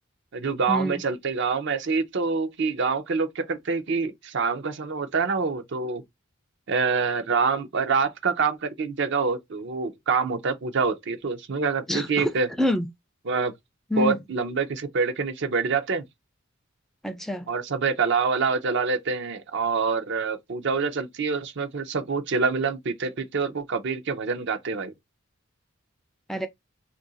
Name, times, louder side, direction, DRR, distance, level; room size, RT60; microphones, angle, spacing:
voice 1, 0.3-6.0 6.7-12.5 13.3-13.5 14.0-16.0 17.5-24.9, right 5 dB, 60° right, 0.6 m, -26 dB
voice 2, 11.9-12.9 13.9-14.2 17.0-17.5 26.3-26.5, left 1 dB, ahead, 0.3 m, -26 dB
2.8 x 2.5 x 3.9 m
head